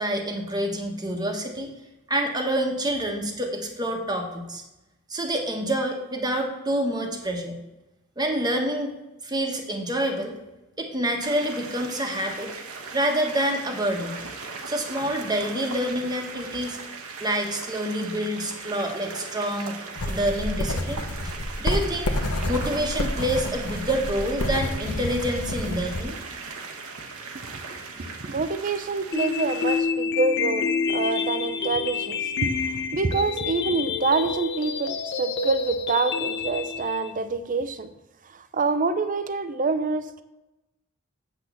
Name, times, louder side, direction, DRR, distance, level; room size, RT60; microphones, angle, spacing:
voice 1, 0.0-1.7 2.1-4.6 5.1-7.6 8.2-8.9 9.2-10.4 10.8-12.5 12.9-14.2 14.6-16.8 17.2-19.7 20.1-22.1 22.5-26.2, right 1 dB, 20° right, 2 dB, 1.3 m, -27 dB
sound 1, 11.2-29.8, right 4 dB, 70° right, 1.2 m, -38 dB
sound 2, 20.0-26.0, left 1 dB, 85° left, 1.0 m, -29 dB
voice 2, 28.0-37.9 38.3-40.2, right 3 dB, 40° right, 11 dB, 0.6 m, -26 dB
sound 3, 29.1-37.1, left 5 dB, 55° left, 0.8 m, -28 dB
8.0 x 6.2 x 7.1 m, 0.98 s
head